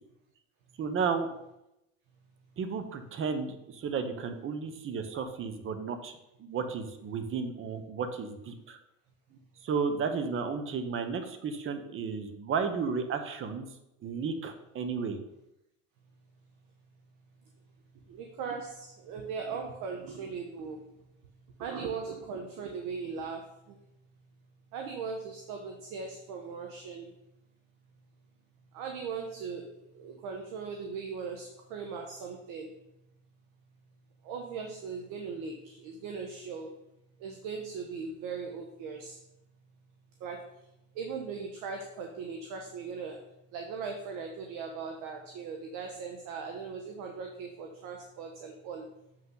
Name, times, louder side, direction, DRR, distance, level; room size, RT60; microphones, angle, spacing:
voice 1, 0.8-1.3 2.6-8.8 9.6-13.7 14.0-15.2, right 5 dB, 35° right, 8 dB, 1.0 m, -33 dB
voice 2, 18.1-20.8 21.6-23.8 24.7-27.1 28.7-32.7 34.2-36.7 37.2-39.2 40.2-40.5 41.0-43.2 43.5-48.9, right 5 dB, 55° right, 3 dB, 1.1 m, -39 dB
7.2 x 5.8 x 3.9 m, 0.87 s
supercardioid pair, 105°, 39 cm